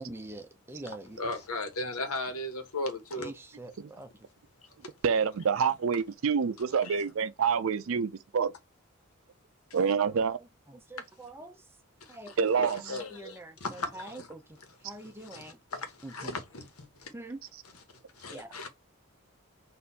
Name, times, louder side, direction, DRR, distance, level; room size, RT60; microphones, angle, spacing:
voice 1, 0.0-1.2 3.2-4.1 10.7-11.6 12.1-15.6 16.0-16.4 17.1-17.4 18.3-18.7, right 1 dB, 10° right, 0.5 m, -45 dB
voice 2, 1.2-3.3 4.8-4.9 6.8-7.0 12.6-14.3 15.3-17.1 18.1-18.7, left 2 dB, 80° left, 1.2 m, -37 dB
voice 3, 5.0-8.5 9.7-10.4 12.4-12.8, right 6 dB, 65° right, 0.4 m, -27 dB
4.3 x 2.6 x 4.0 m
head